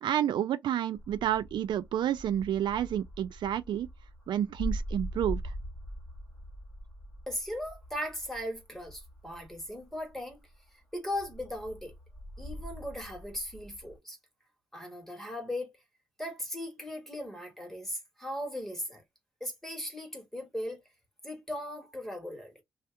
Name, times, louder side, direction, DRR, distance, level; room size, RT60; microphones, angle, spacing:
voice 1, 0.0-3.9 4.3-5.5, right 10 dB, 75° right, 0.4 m, -30 dB
sound 1, 1.0-10.7 11.1-14.0, equal, 25° left, 1.3 m, -42 dB
voice 2, 7.3-10.4 10.9-11.9 12.4-14.2 14.7-15.8 16.2-19.0 19.4-20.8 21.2-22.5, left 1 dB, 5° left, 1.4 m, -38 dB
2.8 x 2.3 x 3.2 m
cardioid pair, 110°, 8 cm